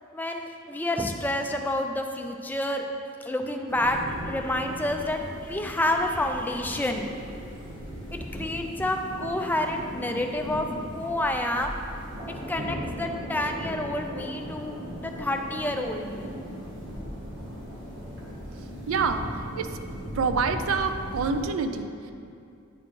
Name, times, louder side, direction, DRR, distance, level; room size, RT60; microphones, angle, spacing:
voice 1, 0.1-2.9 3.2-4.0 4.3-7.1 8.1-10.7 11.0-11.8 12.5-16.3, left 1 dB, 10° left, 3 dB, 0.3 m, -29 dB
sound 1, 3.7-21.5, equal, 60° right, 1.2 m, -38 dB
voice 2, 18.6-19.8 20.1-22.1, right 5 dB, 85° right, 8 dB, 0.4 m, -27 dB
9.0 x 4.2 x 3.1 m, 2.4 s
head